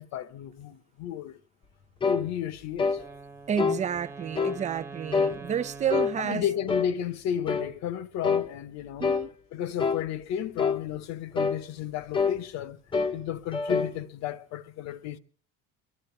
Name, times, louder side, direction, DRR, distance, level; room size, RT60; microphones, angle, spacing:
voice 1, 0.0-1.4 2.0-3.0 6.2-9.1 9.5-12.8 13.1-15.2, left 10 dB, 65° left, 1.2 m, -33 dB
sound 1, 2.0-2.3 2.8-3.0 3.6-3.8 4.4-4.6 5.1-5.4 5.9-6.2 6.7-6.9 7.5-7.7 8.2-8.5 9.0-9.3 9.8-10.0 10.6-10.8 11.3-11.6 12.1-12.4 12.9-13.2 13.5-14.0, left 5 dB, 15° left, 0.8 m, -26 dB
Wind instrument woodwind instrument, 2.9-7.1, right 4 dB, 10° right, 0.9 m, -44 dB
voice 2, 3.5-6.5 9.0-9.3, right 8 dB, 25° right, 0.6 m, -30 dB
24.0 x 12.5 x 3.4 m
cardioid pair, 170°, 30 cm